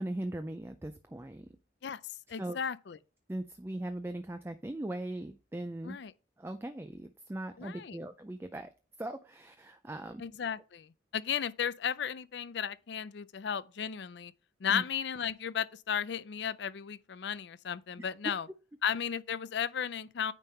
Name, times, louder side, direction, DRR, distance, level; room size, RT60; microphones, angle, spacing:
voice 1, 0.0-1.5 2.4-2.6 3.3-6.0 6.4-8.7 9.0-10.2 14.7-14.8, right 1 dB, 15° right, 0.3 m, -39 dB
voice 2, 2.3-3.0 5.8-6.1 7.6-8.0 10.2-14.3 14.6-18.5 18.8-20.3, left 8 dB, 65° left, 0.4 m, -34 dB
9.1 x 3.6 x 4.3 m
head